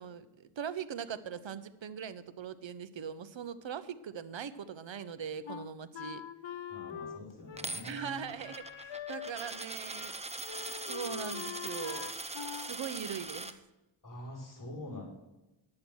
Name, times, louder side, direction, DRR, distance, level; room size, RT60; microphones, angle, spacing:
voice 1, 0.0-6.2 7.8-12.1 12.5-13.5, right 7 dB, 65° right, 14 dB, 0.8 m, -41 dB
Wind instrument woodwind instrument, 5.5-9.7 10.0-10.2 10.4-12.8, left 8 dB, 65° left, 0.8 m, -43 dB
voice 2, 6.7-8.4 14.0-15.0, left 1 dB, 40° left, -4 dB, 5.4 m, -45 dB
Coin (dropping), 7.6-13.5, right 2 dB, 15° right, 0.7 m, -41 dB
11.0 x 8.6 x 6.2 m, 1.0 s
wide cardioid pair, 85°, 49 cm